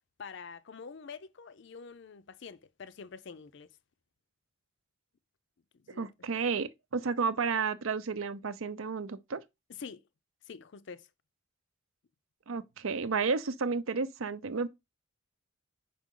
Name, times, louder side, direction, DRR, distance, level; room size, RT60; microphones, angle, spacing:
voice 1, 0.2-3.7 5.7-6.1 9.7-10.0 10.5-11.1, left 5 dB, 55° left, 0.5 m, -46 dB
voice 2, 6.0-9.4 12.5-14.7, right 5 dB, 75° right, 0.6 m, -32 dB
5.4 x 5.1 x 3.7 m
head